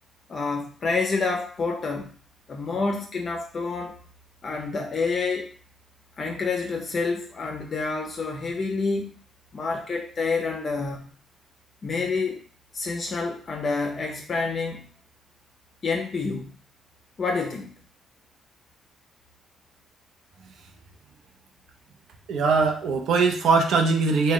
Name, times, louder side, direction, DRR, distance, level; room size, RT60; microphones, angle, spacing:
voice 1, 0.3-2.1 2.5-3.9 4.4-5.5 6.2-9.2 9.5-11.1 11.8-12.4 12.7-15.0 15.8-16.5 17.2-17.7, left 4 dB, 35° left, 2 dB, 0.5 m, -28 dB
voice 2, 22.3-24.3, right 4 dB, 75° right, 3 dB, 0.6 m, -21 dB
3.5 x 2.2 x 3.6 m, 0.42 s
cardioid pair, 150°, 0 cm